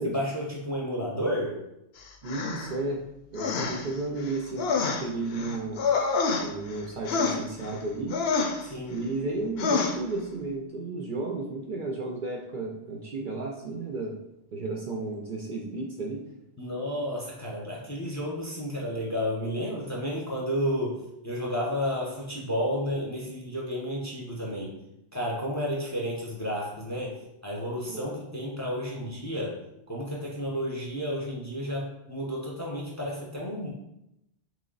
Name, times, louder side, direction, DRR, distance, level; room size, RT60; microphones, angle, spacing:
voice 1, 0.0-1.6 8.6-9.0 16.6-21.0 21.2-24.7 25.1-29.6 29.9-33.7, equal, 20° left, -3 dB, 0.6 m, -31 dB
voice 2, 2.2-3.0 3.3-4.7 5.0-5.9 6.4-8.2 8.9-14.2 14.5-16.2 27.9-28.1, right 3 dB, 55° right, -1 dB, 0.6 m, -33 dB
sound 1, 2.3-2.7 3.4-3.9 4.2-6.8 7.1-7.8 8.1-8.6 9.6-10.0, left 4 dB, 70° left, 0.8 m, -27 dB
3.1 x 3.0 x 3.9 m, 0.86 s
omnidirectional pair, 1.1 m